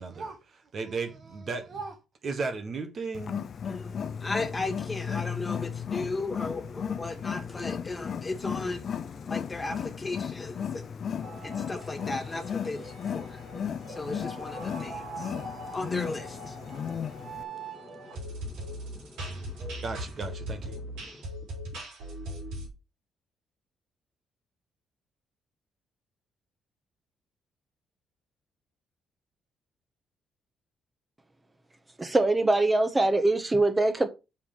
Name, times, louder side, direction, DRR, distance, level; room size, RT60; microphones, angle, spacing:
voice 1, 0.0-3.4 19.8-20.8, right 4 dB, 50° right, 1.4 m, -35 dB
Wild animals, 3.1-17.4, left 7 dB, 55° left, 0.5 m, -35 dB
voice 2, 3.7-19.8 20.7-21.2, left 3 dB, 20° left, 1.8 m, -37 dB
sound 1, 11.2-22.7, right 1 dB, 90° right, 4.0 m, -40 dB
voice 3, 32.0-34.1, right 2 dB, 20° right, 1.2 m, -23 dB
5.7 x 4.8 x 4.9 m
cardioid pair, 90°, 0 cm